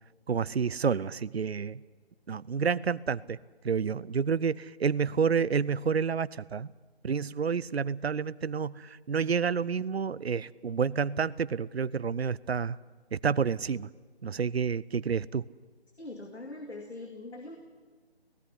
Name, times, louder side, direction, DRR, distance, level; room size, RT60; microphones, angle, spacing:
voice 1, 0.3-1.8 2.3-3.4 3.6-6.7 7.0-12.8 13.1-13.9 14.2-15.5, right 6 dB, 70° right, 20 dB, 0.6 m, -29 dB
voice 2, 16.0-17.6, left 2 dB, 85° left, 3 dB, 2.6 m, -42 dB
17.0 x 16.0 x 9.8 m, 1.4 s
figure-of-eight pair, 160°, 32 cm